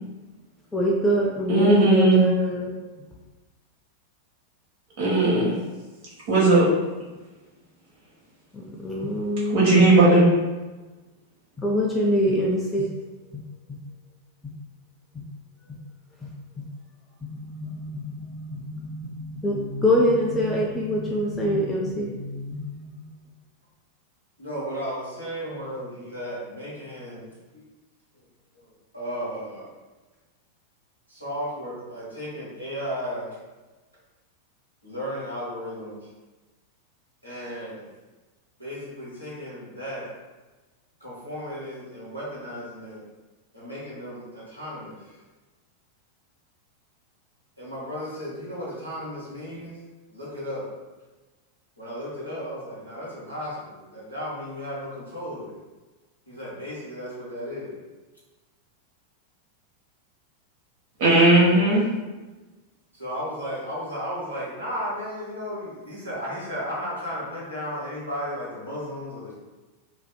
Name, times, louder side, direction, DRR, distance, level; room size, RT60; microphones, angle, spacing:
voice 1, 0.7-2.7 8.5-9.9 11.6-12.9 13.3-13.4 13.7-13.8 15.1-15.2 15.7-15.8 16.2-16.7 17.2-23.1, equal, 15° left, -3 dB, 0.3 m, -25 dB
voice 2, 1.5-2.2 5.0-5.6 6.3-6.6 9.5-10.3 61.0-61.8, right 2 dB, 55° right, -6 dB, 0.9 m, -17 dB
voice 3, 24.4-27.3 27.5-27.6 28.5-28.6 28.9-29.7 31.1-33.3 34.8-36.0 37.2-37.9 38.6-40.1 41.0-43.0 43.5-45.1 47.6-49.8 50.1-50.7 51.8-55.6 56.3-57.8 61.4-61.7 63.0-69.4, equal, 90° right, -9 dB, 1.1 m, -34 dB
2.5 x 2.4 x 2.2 m, 1.2 s
figure-of-eight pair, 90°, 0 cm